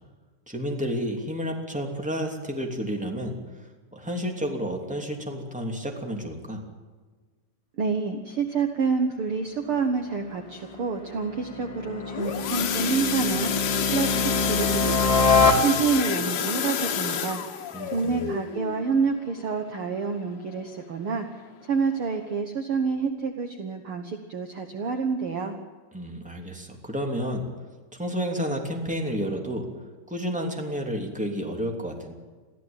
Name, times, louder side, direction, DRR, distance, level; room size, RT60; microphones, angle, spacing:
voice 1, 0.5-3.4 3.9-6.6 17.7-18.3 25.9-27.4 27.9-29.7 30.1-32.1, equal, ahead, 2 dB, 2.3 m, -31 dB
voice 2, 7.8-15.0 15.6-25.5, right 5 dB, 65° right, 6 dB, 1.3 m, -28 dB
sound 1, 9.8-16.3, left 3 dB, 15° left, 1.4 m, -26 dB
sound 2, 11.9-20.5 21.0-21.2 21.5-21.6 22.1-22.2, left 8 dB, 85° left, 3.6 m, -30 dB
23.5 x 15.0 x 9.0 m, 1.4 s
omnidirectional pair, 4.4 m